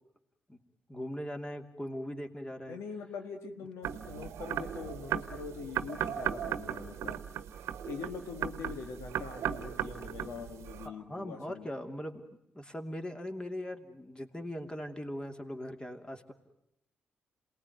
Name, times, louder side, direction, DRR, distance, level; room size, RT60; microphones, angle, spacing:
voice 1, 0.9-2.8 10.8-12.2 12.5-16.3, equal, 20° left, 5 dB, 2.8 m, -40 dB
voice 2, 2.7-7.2 7.8-11.7, left 5 dB, 80° left, 5 dB, 1.7 m, -43 dB
sound 1, 3.8-10.9, right 10 dB, 75° right, 1.1 m, -37 dB
27.5 x 20.0 x 9.4 m, 0.80 s
supercardioid pair, 50°, 5 cm